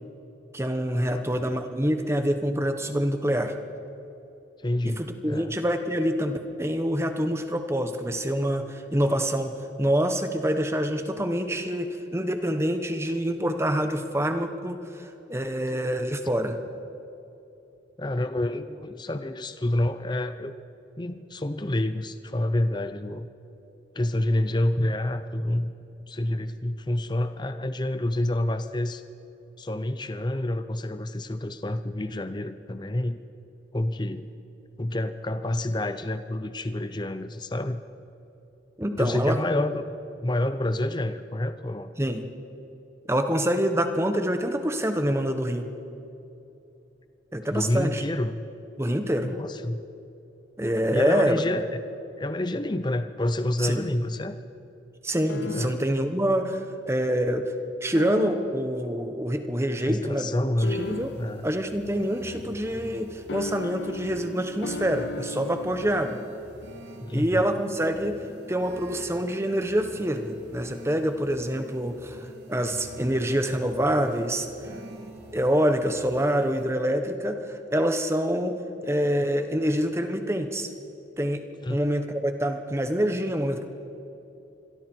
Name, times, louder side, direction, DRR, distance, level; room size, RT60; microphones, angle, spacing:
voice 1, 0.5-3.5 4.8-9.5 9.8-16.6 38.8-39.4 42.0-42.3 43.1-45.7 47.3-48.0 48.8-49.3 50.6-51.5 53.6-53.9 55.0-57.5 57.8-61.1 61.4-66.2 67.1-68.1 68.5-74.5 75.3-78.6 78.8-80.7 81.2-81.4 81.7-83.6, equal, 15° right, 7 dB, 1.1 m, -26 dB
voice 2, 1.0-1.4 4.6-5.5 18.0-20.5 21.0-23.3 23.9-25.7 26.1-29.0 29.6-33.2 33.7-34.3 34.8-37.8 39.0-39.9 40.2-41.9 47.5-48.4 49.2-49.8 50.9-51.8 52.2-54.4 55.5-55.8 59.8-60.8 61.2-61.5 67.0-67.5 81.6-81.8, left 1 dB, 25° left, 10 dB, 0.7 m, -28 dB
sound 1, 55.3-56.1 58.0-58.8 60.6-61.5 63.3-66.0, left 3 dB, 65° left, 0.5 m, -36 dB
sound 2, 60.6-76.6, right 1 dB, 60° right, 3.1 m, -46 dB
27.0 x 22.5 x 4.6 m, 2.9 s
head